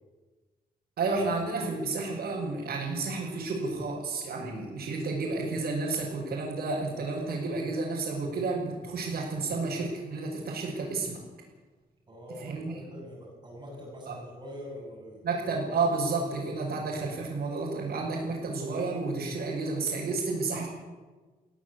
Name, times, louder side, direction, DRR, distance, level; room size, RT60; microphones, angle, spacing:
voice 1, 1.0-11.2 12.4-12.8 14.1-14.2 15.2-20.7, right 3 dB, 75° right, -5 dB, 6.1 m, -31 dB
voice 2, 12.1-15.3, left 1 dB, 30° right, -2 dB, 7.9 m, -44 dB
24.5 x 16.5 x 8.5 m, 1.3 s
wide cardioid pair, 140°, 16 cm